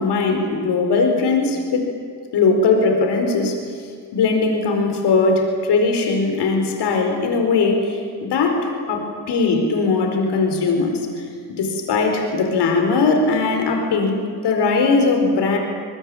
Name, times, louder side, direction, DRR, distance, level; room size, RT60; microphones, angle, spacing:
voice 1, 0.0-1.9 2.3-3.6 4.1-11.1 11.5-14.2 14.4-15.6, left 4 dB, 85° left, 4 dB, 4.7 m, -19 dB
26.5 x 21.0 x 8.8 m, 2.1 s
cardioid pair, 65°, 40 cm